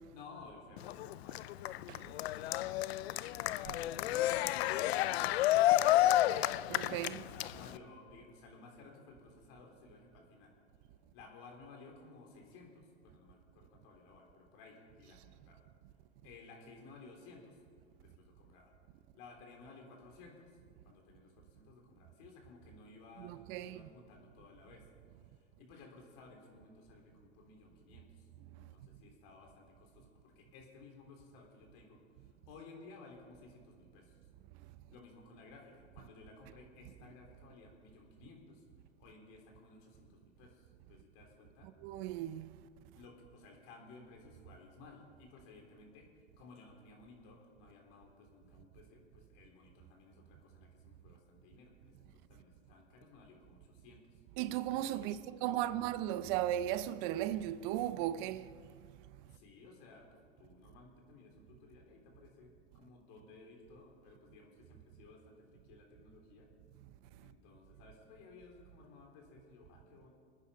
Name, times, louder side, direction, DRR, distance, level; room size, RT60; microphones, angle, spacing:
voice 1, 0.1-1.7 2.3-5.1 6.9-10.5 11.1-15.7 16.2-17.6 17.9-18.7 19.1-20.6 20.8-24.9 25.3-28.3 28.6-34.2 34.9-38.6 39.0-41.7 42.9-46.1 46.4-54.2 55.0-55.8 59.2-66.5 67.2-70.1, left 3 dB, 55° left, 3.9 m, -57 dB
Cheering, 0.8-7.8, left 14 dB, 75° left, 0.5 m, -31 dB
voice 2, 6.7-7.2 23.2-23.8 41.8-42.5 54.4-58.5, right 12 dB, 50° right, 0.7 m, -36 dB
25.0 x 9.7 x 5.1 m
hypercardioid pair, 120°, 32 cm